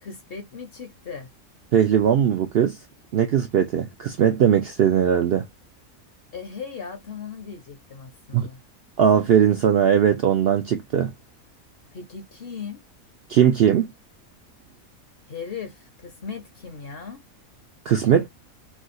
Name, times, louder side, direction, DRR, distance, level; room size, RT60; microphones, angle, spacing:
voice 1, 0.0-1.3 6.3-8.6 11.9-12.8 15.3-17.2, left 6 dB, 50° left, 0.8 m, -37 dB
voice 2, 1.7-2.8 3.1-5.4 8.3-8.5 9.0-11.1 13.3-13.9 17.9-18.3, right 9 dB, 65° right, 0.6 m, -19 dB
3.4 x 2.3 x 2.5 m
omnidirectional pair, 1.5 m